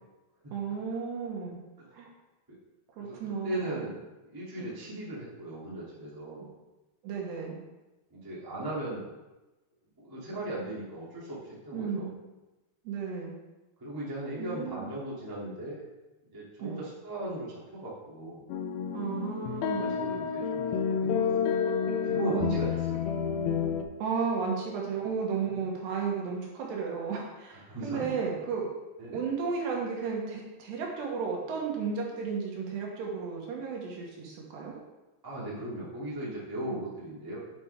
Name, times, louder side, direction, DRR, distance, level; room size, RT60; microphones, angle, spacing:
voice 1, 0.5-1.6 1.9-2.1 3.0-3.8 4.6-4.7 7.0-7.6 11.7-12.1 12.8-13.3 14.4-14.9 16.6-16.8 18.9-19.9 22.3-22.6 24.0-28.6 29.1-34.8 36.7-36.8, right 5 dB, 75° right, -1 dB, 3.4 m, -33 dB
voice 2, 3.4-4.0 4.3-6.5 8.1-9.0 10.0-12.1 13.8-15.8 16.3-18.4 19.5-20.6 20.9-21.3 22.1-23.0 27.7-28.2 29.0-29.2 35.2-37.4, right 1 dB, 10° right, -8 dB, 1.0 m, -37 dB
sound 1, 18.5-23.8, left 7 dB, 80° left, 2.5 m, -29 dB
8.6 x 7.9 x 3.5 m, 1.1 s
omnidirectional pair, 5.2 m